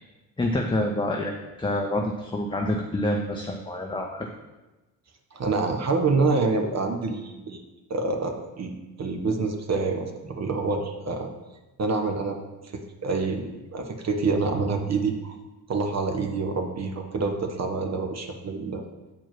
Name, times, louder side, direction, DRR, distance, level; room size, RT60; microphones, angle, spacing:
voice 1, 0.4-4.3, left 1 dB, 10° left, 1 dB, 0.7 m, -27 dB
voice 2, 5.3-7.6 7.9-8.7 9.0-11.3 11.8-12.4 12.7-15.4 15.7-18.8, right 4 dB, 35° right, 4 dB, 1.1 m, -27 dB
7.5 x 4.6 x 5.8 m, 1.1 s
figure-of-eight pair, 45°, 46 cm